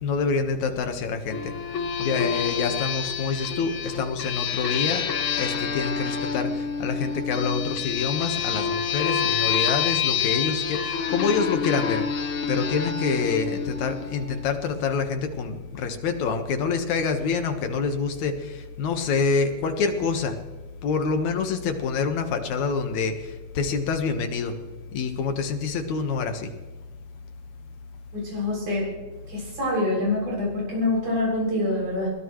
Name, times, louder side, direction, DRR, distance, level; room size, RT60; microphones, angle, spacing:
voice 1, 0.0-1.5 2.0-5.1 5.4-12.1 12.5-20.4 20.8-24.5 24.9-26.5, left 5 dB, 75° left, 6 dB, 2.8 m, -26 dB
sound 1, 1.3-14.5, left 7 dB, 55° left, 1.7 m, -28 dB
voice 2, 28.1-28.9 29.3-32.1, left 2 dB, 90° right, -3 dB, 8.5 m, -25 dB
22.5 x 18.0 x 3.2 m, 1.3 s
omnidirectional pair, 3.4 m